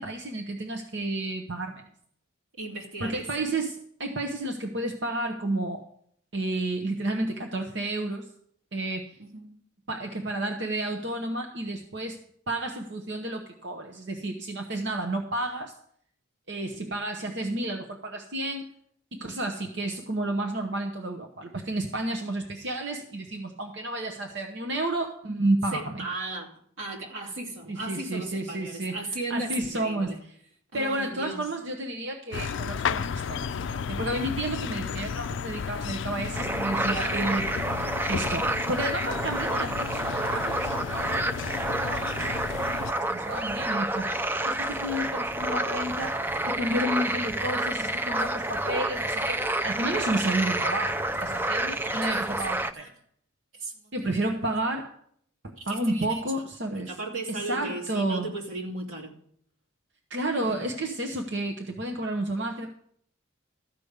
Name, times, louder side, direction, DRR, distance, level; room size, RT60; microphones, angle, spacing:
voice 1, 0.0-1.8 3.0-5.8 6.3-8.3 8.7-9.2 9.9-12.2 12.5-15.7 16.5-18.7 19.1-26.1 27.7-29.0 29.3-30.3 30.7-37.5 38.0-41.3 41.8-42.6 42.9-44.1 44.4-52.9 53.9-54.9 55.4-56.9 57.3-58.3 60.1-62.7, right 1 dB, 60° right, 1.0 m, -31 dB
voice 2, 2.6-3.4 9.2-9.5 25.7-30.2 30.7-31.4 52.1-52.3 52.8-52.9 53.5-53.9 55.6-56.2 56.9-59.1 60.4-60.7, right 2 dB, 85° right, 2.7 m, -36 dB
sound 1, 32.3-42.9, left 6 dB, 65° left, 0.4 m, -33 dB
sound 2, 36.3-52.7, right 1 dB, 10° right, 0.4 m, -29 dB
14.0 x 5.2 x 8.0 m
head